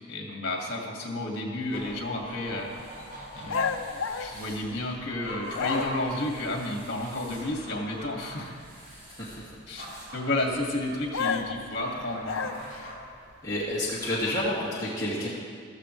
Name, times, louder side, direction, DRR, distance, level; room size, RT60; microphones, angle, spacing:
voice 1, 0.1-3.0 3.4-8.5 9.7-12.5, left 1 dB, 50° left, 0 dB, 2.0 m, -32 dB
sound 1, 1.6-14.6, equal, 45° right, 4.0 m, -44 dB
sound 2, 3.5-5.1 5.5-6.2 11.1-12.9, left 5 dB, 75° left, 0.6 m, -31 dB
voice 2, 13.4-15.3, left 1 dB, 15° left, -9 dB, 2.2 m, -29 dB
14.5 x 13.5 x 3.2 m, 2.1 s
head